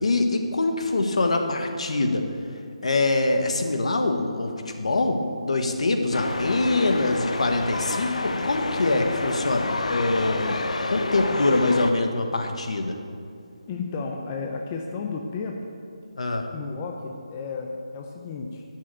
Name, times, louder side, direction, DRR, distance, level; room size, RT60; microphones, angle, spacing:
voice 1, 0.0-2.2 2.8-4.5 4.8-10.6 10.9-12.9 16.2-16.5, left 2 dB, 65° left, 5 dB, 1.3 m, -24 dB
sound 1, 6.1-11.9, left 2 dB, 80° left, 0.8 m, -29 dB
voice 2, 13.7-15.7 16.5-18.6, left 4 dB, 15° left, 1 dB, 0.5 m, -33 dB
11.0 x 6.2 x 7.6 m, 2.3 s
hypercardioid pair, 175°, 4 cm